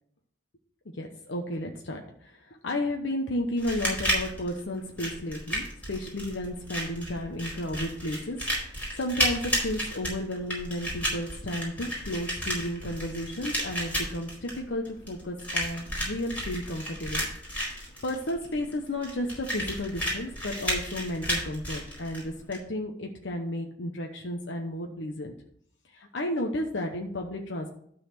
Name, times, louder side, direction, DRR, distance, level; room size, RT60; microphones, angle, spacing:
voice 1, 0.9-17.3 17.7-25.3 25.9-27.7, left 1 dB, 85° left, 2 dB, 1.0 m, -33 dB
sound 1, 3.6-22.6, equal, 10° left, 4.3 m, -32 dB
12.0 x 4.1 x 6.7 m, 0.67 s
head